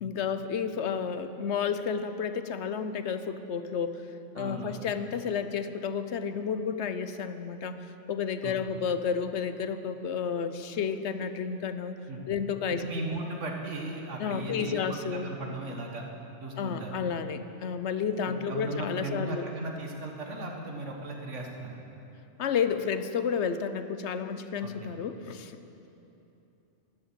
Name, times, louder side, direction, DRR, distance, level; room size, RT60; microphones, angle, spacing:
voice 1, 0.0-4.0 4.3-7.8 8.1-12.0 12.3-12.8 13.1-13.2 14.2-15.3 16.6-19.5 22.4-25.6, left 6 dB, 70° left, 10 dB, 1.0 m, -31 dB
voice 2, 4.4-4.8 8.4-8.7 12.1-12.2 12.7-16.0 16.4-17.0 18.3-21.7 24.6-24.9, right 2 dB, 90° right, 1 dB, 1.9 m, -37 dB
13.0 x 10.5 x 7.8 m, 2.9 s
omnidirectional pair, 1.2 m